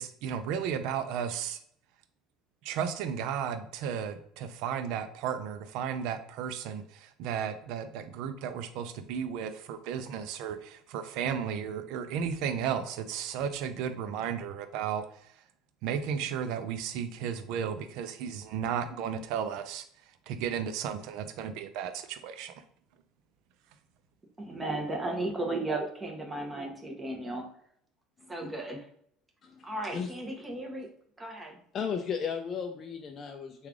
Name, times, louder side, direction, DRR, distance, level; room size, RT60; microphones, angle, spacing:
voice 1, 0.0-1.6 2.6-15.0 15.8-19.8 20.3-22.5, right 8 dB, 70° right, 10 dB, 0.4 m, -34 dB
voice 2, 24.4-27.5 28.3-28.9 29.6-30.9 31.2-31.6, right 2 dB, 15° right, 1 dB, 0.8 m, -35 dB
voice 3, 29.4-30.1 31.7-33.7, left 6 dB, 40° left, 4 dB, 0.3 m, -35 dB
3.2 x 2.4 x 3.6 m, 0.65 s
supercardioid pair, 120°, 0 cm